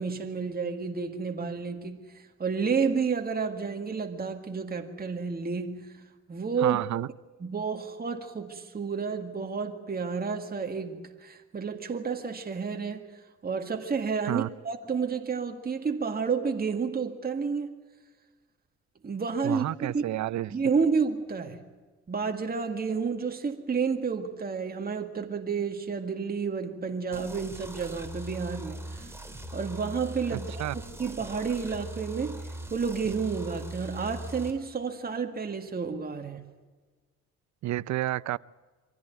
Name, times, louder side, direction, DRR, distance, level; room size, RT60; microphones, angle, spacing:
voice 1, 0.0-2.1 2.4-5.9 6.3-6.8 7.4-13.1 13.4-17.8 19.0-19.6 19.9-20.2 20.5-21.6 22.1-29.1 29.5-32.4 32.7-36.4, right 5 dB, 30° right, 1.9 m, -30 dB
voice 2, 6.6-7.1 14.2-14.5 19.4-20.6 30.3-30.7 37.6-38.4, right 14 dB, 65° right, 0.6 m, -30 dB
sound 1, 27.1-34.5, right 1 dB, 10° right, 3.2 m, -40 dB
24.0 x 15.5 x 9.4 m
cardioid pair, 90°, 30 cm